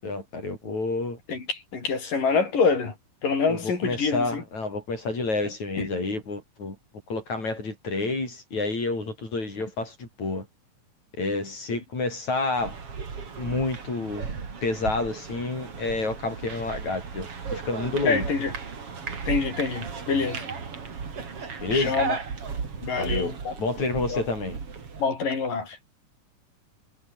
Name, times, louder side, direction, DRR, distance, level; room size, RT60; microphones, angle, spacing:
voice 1, 0.0-1.2 3.5-6.8 7.1-10.5 11.2-12.8 13.4-14.3 14.6-18.3 21.6-22.0 23.0-24.6, left 3 dB, 55° left, 9.5 m, -29 dB
voice 2, 1.3-2.9 3.2-4.4 5.8-5.9 18.0-18.5 19.3-20.5 21.7-22.2 22.8-23.5 24.1-24.2 25.0-25.8, left 5 dB, 80° left, 7.1 m, -26 dB
sound 1, 12.5-25.1, right 5 dB, 45° right, 4.1 m, -35 dB
omnidirectional pair, 3.8 m